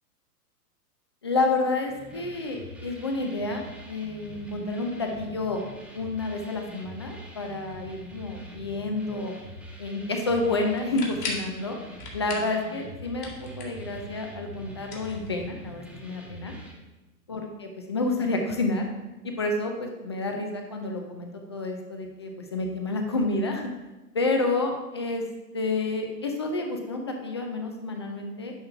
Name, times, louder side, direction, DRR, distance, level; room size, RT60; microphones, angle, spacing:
voice 1, 1.2-5.6 5.9-9.3 9.8-11.8 12.1-16.5 17.3-18.8 19.2-23.7 24.1-25.2 25.5-28.5, left 2 dB, 20° left, 3 dB, 0.3 m, -29 dB
sound 1, 1.9-16.7, equal, ahead, 1.0 m, -44 dB
sound 2, 10.7-11.5 12.0-12.6 12.9-13.9 14.8-15.7, left 3 dB, 65° left, 2.3 m, -37 dB
10.5 x 3.7 x 5.6 m, 1.1 s
figure-of-eight pair, 115°, 48 cm